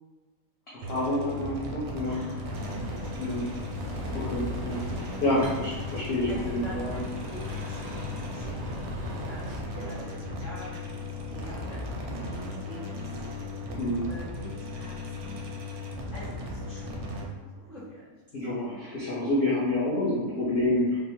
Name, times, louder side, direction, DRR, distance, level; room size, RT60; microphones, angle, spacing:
voice 1, 0.7-2.2 3.2-3.5 4.1-7.0 13.8-14.1 18.3-21.0, left 1 dB, 50° left, -9 dB, 0.8 m, -28 dB
Bubbling Drone, 0.8-17.2, left 2 dB, 85° right, 1.1 m, -36 dB
voice 2, 1.8-2.5 2.8-3.1 6.3-11.0 11.3-12.0 12.2-13.0 14.1-15.5 16.1-18.1, equal, 20° left, -9 dB, 1.1 m, -46 dB
sound 1, 2.5-9.6, left 1 dB, 60° right, 0.6 m, -39 dB
3.5 x 2.0 x 2.9 m, 1.3 s
omnidirectional pair, 1.5 m